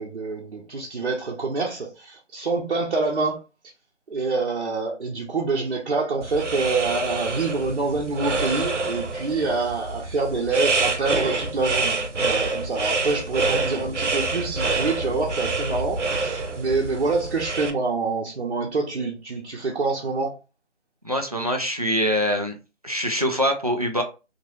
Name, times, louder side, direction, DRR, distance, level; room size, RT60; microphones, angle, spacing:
voice 1, 0.0-3.4 4.1-20.4, right 3 dB, 55° right, 0.8 m, -26 dB
sound 1, 6.2-17.7, right 3 dB, 80° right, 0.8 m, -27 dB
voice 2, 21.0-22.6 22.8-24.0, equal, 35° right, 0.4 m, -24 dB
2.9 x 2.9 x 2.8 m
figure-of-eight pair, 165°, 36 cm